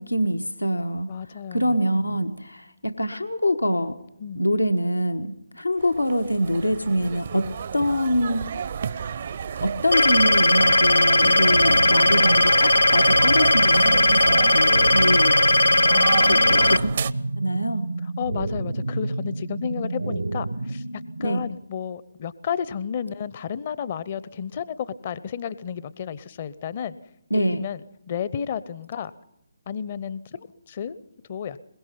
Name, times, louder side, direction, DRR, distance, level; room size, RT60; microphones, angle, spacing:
voice 1, 0.0-1.1 1.5-4.0 4.3-8.5 9.6-15.4 16.0-16.9 17.4-17.9 21.2-21.4 27.3-27.7, equal, 85° left, 9 dB, 1.3 m, -25 dB
voice 2, 1.1-2.3 4.2-4.4 11.2-12.0 14.7-14.9 15.9-16.8 18.0-20.8 21.2-27.0 27.3-29.1 29.7-31.0 31.3-31.6, left 7 dB, 40° left, 17 dB, 0.8 m, -32 dB
sound 1, 5.8-17.1, right 7 dB, 45° right, 0.7 m, -32 dB
sound 2, 9.9-16.8, left 2 dB, 70° left, 0.8 m, -18 dB
sound 3, 11.5-21.5, right 2 dB, 80° right, 1.2 m, -30 dB
22.5 x 21.5 x 5.8 m, 0.85 s
figure-of-eight pair, 140°, 0 cm